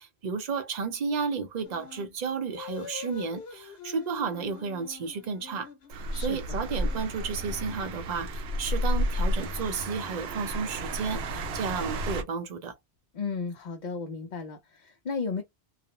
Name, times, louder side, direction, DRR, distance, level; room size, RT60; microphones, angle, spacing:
voice 1, 0.0-5.7 6.1-12.7, right 5 dB, 50° right, 0.7 m, -32 dB
sound 1, 1.6-2.1 2.5-8.2 8.9-11.8, left 7 dB, 85° left, 1.0 m, -47 dB
sound 2, 5.9-12.2, equal, 80° right, 0.9 m, -31 dB
voice 2, 6.1-6.6 13.1-15.4, left 4 dB, 55° left, 0.6 m, -34 dB
2.4 x 2.0 x 2.8 m
omnidirectional pair, 1.0 m